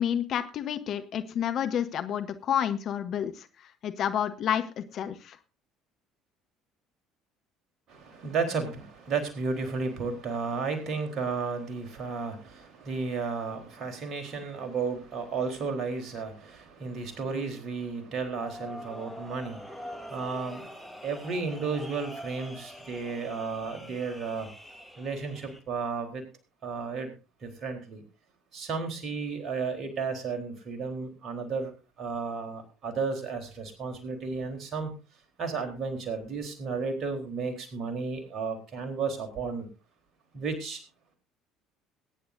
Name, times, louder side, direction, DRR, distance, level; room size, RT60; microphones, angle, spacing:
voice 1, 0.0-5.4, left 9 dB, 50° left, 9 dB, 1.1 m, -30 dB
voice 2, 7.9-20.8 21.0-24.5 25.0-26.2 26.6-27.1 27.4-28.0 28.5-31.7 32.0-34.9 35.4-39.7 40.3-40.8, right 4 dB, 45° right, 5 dB, 3.8 m, -33 dB
sound 1, 18.4-25.6, equal, 5° right, 3.2 m, -44 dB
21.5 x 10.0 x 2.6 m, 0.32 s
figure-of-eight pair, 60°, 0 cm